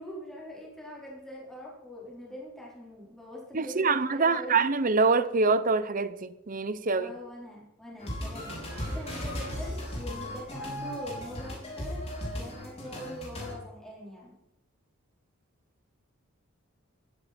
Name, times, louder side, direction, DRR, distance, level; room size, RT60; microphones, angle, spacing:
voice 1, 0.0-4.6 7.0-12.0 12.3-14.4, left 1 dB, ahead, 4.4 m, -43 dB
voice 2, 3.5-7.1, right 4 dB, 40° right, 0.8 m, -25 dB
sound 1, 8.0-13.5, equal, 30° left, 6.1 m, -36 dB
sound 2, 8.5-12.1 12.4-12.5, equal, 65° right, 4.0 m, -48 dB
15.5 x 13.5 x 4.4 m
head